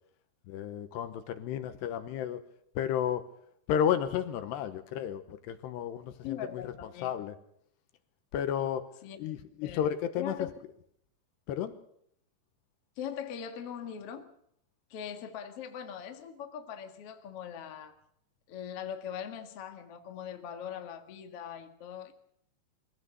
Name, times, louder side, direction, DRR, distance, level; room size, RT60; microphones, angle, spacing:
voice 1, 0.5-2.4 2.8-3.3 3.7-6.7 7.0-7.4 8.3-8.9 9.2-10.3 11.5-11.7, left 9 dB, 75° left, 3.0 m, -32 dB
voice 2, 6.2-7.1 9.0-9.2 9.6-9.9 10.2-10.6 13.0-14.3 14.9-18.0 18.5-22.1, left 8 dB, 50° left, 1.8 m, -41 dB
23.5 x 16.5 x 6.9 m
omnidirectional pair, 5.3 m